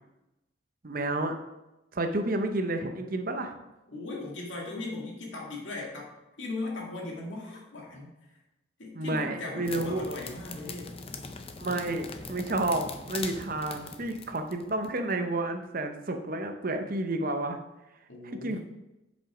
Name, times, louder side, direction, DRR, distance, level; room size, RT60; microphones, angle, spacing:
voice 1, 0.8-1.4 1.9-3.6 8.9-10.0 11.6-17.6 18.2-18.6, right 2 dB, 45° right, 6 dB, 0.7 m, -30 dB
voice 2, 3.9-6.1 6.4-8.1 8.8-10.9 18.1-18.6, left 2 dB, 65° left, -2 dB, 2.1 m, -38 dB
sound 1, 9.7-15.0, left 4 dB, 30° left, 0.5 m, -41 dB
7.7 x 5.3 x 4.9 m, 0.97 s
head